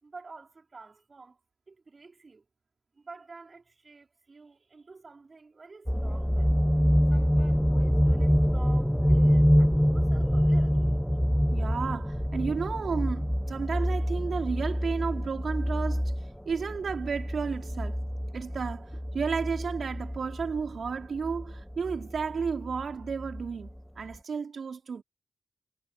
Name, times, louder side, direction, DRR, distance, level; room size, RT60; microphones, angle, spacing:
voice 1, 0.0-1.4 1.7-2.4 2.9-6.5 7.1-10.9, right 4 dB, 45° right, 4.3 m, -50 dB
sound 1, 5.9-23.7 24.1-24.2, equal, ahead, 0.8 m, -26 dB
voice 2, 11.5-16.0 16.5-18.0 18.3-25.0, right 5 dB, 65° right, 4.2 m, -32 dB
cardioid pair, 55°, 0 cm